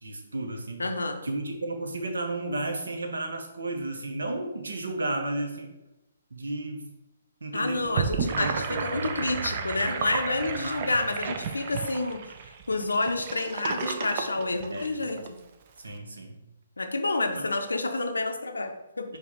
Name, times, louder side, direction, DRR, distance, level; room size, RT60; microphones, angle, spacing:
voice 1, 0.0-0.8 1.2-5.7 6.3-6.9 7.4-8.0 8.3-9.5 10.4-11.0 14.7-15.1 15.8-16.4 17.3-17.4, right 2 dB, 75° right, 4 dB, 0.8 m, -33 dB
voice 2, 0.8-1.2 7.5-12.3 12.7-15.4 16.8-19.1, left 2 dB, 80° left, 6 dB, 0.5 m, -29 dB
Gurgling / Sink (filling or washing), 7.8-15.3, right 6 dB, 40° right, 0.4 m, -32 dB
4.5 x 2.3 x 4.1 m, 0.98 s
figure-of-eight pair, 135°, 0 cm